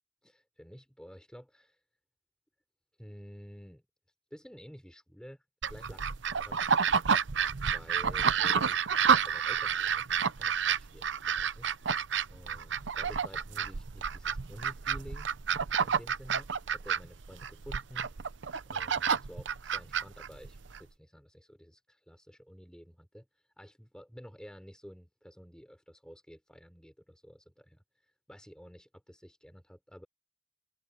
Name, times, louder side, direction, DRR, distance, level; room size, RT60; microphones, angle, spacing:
voice 1, 0.2-1.8 3.0-3.8 4.3-6.6 7.6-15.3 15.8-18.1 18.7-23.3 23.6-27.8 28.3-30.1, equal, 5° left, 4.1 m, -51 dB
sound 1, 5.6-20.8, right 7 dB, 80° right, 0.7 m, -30 dB
head